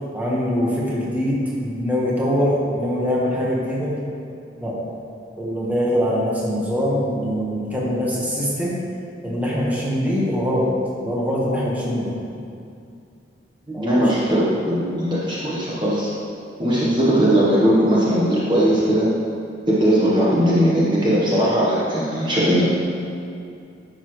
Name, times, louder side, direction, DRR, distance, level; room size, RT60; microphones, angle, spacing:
voice 1, 0.1-4.0 4.6-4.8 5.4-8.8 9.2-10.7 11.0-12.1 13.7-13.9, equal, 10° right, -6 dB, 1.3 m, -23 dB
voice 2, 13.7-16.1 16.6-19.1 19.7-22.6, equal, 25° right, -8 dB, 1.1 m, -19 dB
10.5 x 6.7 x 3.2 m, 2.5 s
head